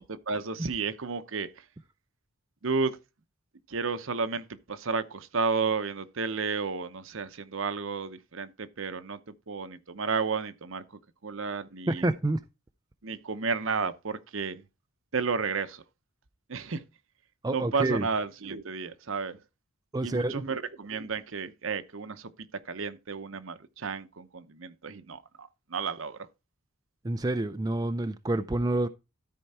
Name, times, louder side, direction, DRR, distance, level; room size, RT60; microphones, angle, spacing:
voice 1, 0.1-1.6 2.6-3.0 3.7-10.8 11.2-12.1 13.0-14.6 15.1-15.8 16.5-16.8 17.5-19.4 20.0-22.3 22.6-26.2, right 5 dB, 60° right, 0.8 m, -32 dB
voice 2, 11.9-12.4 17.4-18.1 19.9-20.4 27.0-28.9, right 2 dB, 15° right, 0.4 m, -28 dB
13.0 x 4.5 x 4.2 m
head